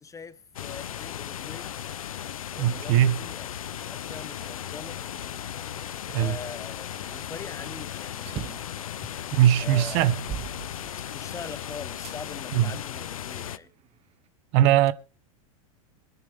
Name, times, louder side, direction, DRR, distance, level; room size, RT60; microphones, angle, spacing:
voice 1, 0.0-1.7 2.5-3.5 3.9-5.0 6.1-8.6 9.0-9.1 9.6-10.2 11.1-13.7, left 5 dB, 20° left, 1.1 m, -42 dB
sound 1, 0.5-13.6, left 10 dB, 90° left, 0.8 m, -36 dB
voice 2, 2.6-3.2 6.1-6.4 9.3-10.2 12.5-12.7 14.5-14.9, right 12 dB, 55° right, 1.3 m, -20 dB
sound 2, 3.7-9.8, equal, ahead, 4.1 m, -55 dB
sound 3, 8.3-8.8 9.4-9.5 10.0-11.4 12.0-12.2 12.9-14.0, right 9 dB, 35° right, 1.3 m, -39 dB
24.0 x 10.5 x 3.7 m
hypercardioid pair, 110°, 17 cm